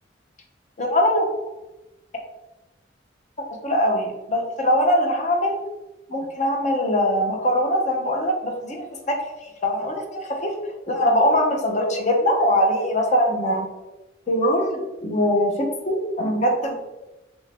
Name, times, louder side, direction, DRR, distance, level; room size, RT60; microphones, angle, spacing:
voice 1, 0.8-1.3 3.6-5.6 6.1-9.2 9.6-10.5 10.9-13.6 14.3-16.7, equal, 40° left, 1 dB, 0.6 m, -22 dB
3.2 x 2.6 x 3.3 m, 1.0 s
head